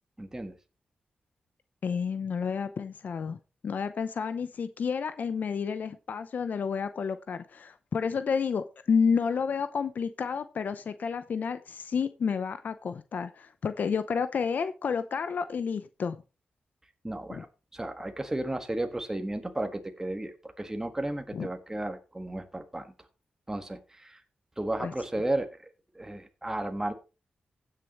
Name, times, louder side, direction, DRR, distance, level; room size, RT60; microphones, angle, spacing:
voice 1, 0.2-0.5 17.0-17.5 17.7-22.9 23.5-24.2 24.6-25.7 25.9-26.9, right 1 dB, 15° right, 5 dB, 1.6 m, -33 dB
voice 2, 1.8-3.4 3.6-16.2 17.3-17.4 21.3-21.5 24.8-24.9, left 6 dB, 70° left, 11 dB, 0.7 m, -30 dB
16.0 x 6.7 x 3.1 m, 0.30 s
cardioid pair, 70°, 3 cm